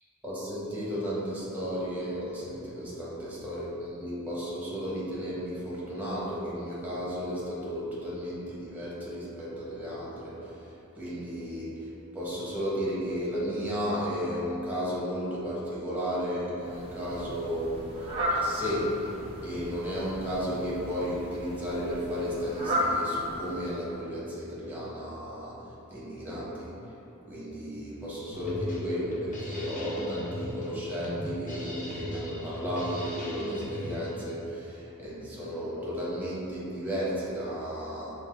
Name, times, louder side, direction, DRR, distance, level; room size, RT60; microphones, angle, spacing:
voice 1, 0.2-10.5 10.9-11.9 12.1-26.8 27.3-38.1, equal, 10° right, -8 dB, 1.0 m, -33 dB
Fowl, 16.6-24.0, equal, 25° right, 0.7 m, -34 dB
Drum kit, 28.3-34.3, equal, 40° left, 0.7 m, -39 dB
5.7 x 2.4 x 3.6 m, 2.9 s
head